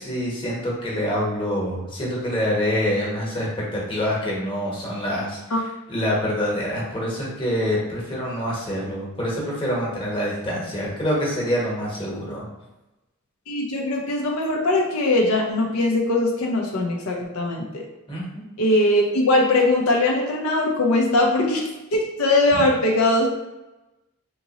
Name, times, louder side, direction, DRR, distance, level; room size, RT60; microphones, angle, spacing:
voice 1, 0.0-5.6 5.9-12.5 18.1-18.4 22.5-22.6, equal, 25° left, -5 dB, 1.0 m, -26 dB
voice 2, 13.5-17.8 18.6-23.3, left 2 dB, 85° left, -1 dB, 0.6 m, -21 dB
3.6 x 2.9 x 2.9 m, 1.0 s
head